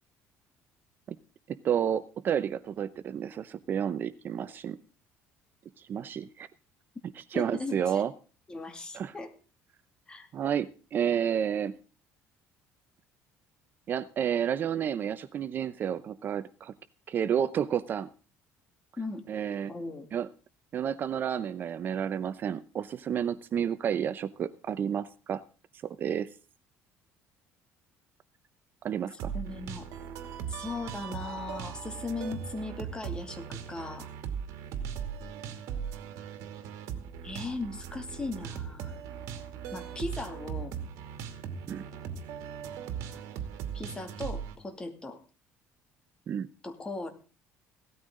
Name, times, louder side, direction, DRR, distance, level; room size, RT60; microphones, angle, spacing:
voice 1, 1.5-4.8 5.8-6.5 7.3-8.1 8.9-9.1 10.3-11.8 13.9-16.7 17.1-18.1 19.3-19.7 20.1-20.3 20.7-25.4 25.8-26.3 28.8-29.3 41.7-41.9 46.3-46.5, right 8 dB, 40° right, 13 dB, 0.7 m, -30 dB
voice 2, 7.3-8.0 8.5-9.3 10.1-10.3 19.0-19.2 19.7-20.1 29.3-29.9 30.5-34.1 37.2-39.0 39.7-40.7 43.7-45.2 46.6-47.1, left 3 dB, 15° left, 6 dB, 2.5 m, -38 dB
sound 1, 29.2-44.6, right 8 dB, 75° right, 2.5 m, -39 dB
17.0 x 13.5 x 3.8 m, 0.36 s
cardioid pair, 145°, 5 cm